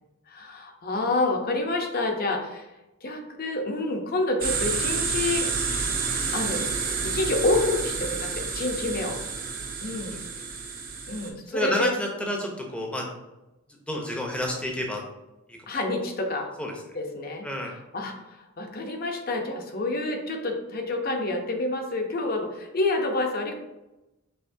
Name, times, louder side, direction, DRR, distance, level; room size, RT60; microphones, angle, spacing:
voice 1, 0.3-2.7 3.0-5.5 6.3-6.7 7.0-9.2 9.8-10.2 11.1-11.9 15.7-16.5 16.9-17.5 17.9-23.5, left 2 dB, 45° left, 3 dB, 0.6 m, -28 dB
sound 1, 4.4-11.3, right 5 dB, 40° right, 0.7 m, -29 dB
voice 2, 11.5-13.1 13.9-15.0 15.5-15.6 16.6-16.7 17.4-17.7, left 1 dB, 5° left, 0 dB, 0.7 m, -29 dB
5.6 x 3.2 x 2.6 m, 1.0 s
head